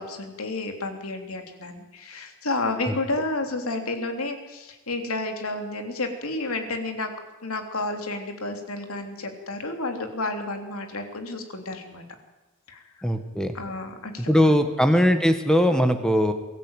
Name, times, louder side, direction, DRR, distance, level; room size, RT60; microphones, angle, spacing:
voice 1, 0.0-7.1 7.4-12.0 12.7-12.8 13.5-14.6, left 2 dB, 75° left, 5 dB, 3.2 m, -31 dB
voice 2, 13.0-13.5 14.3-16.3, equal, 5° left, 7 dB, 1.5 m, -20 dB
23.0 x 14.0 x 9.1 m, 1.1 s
head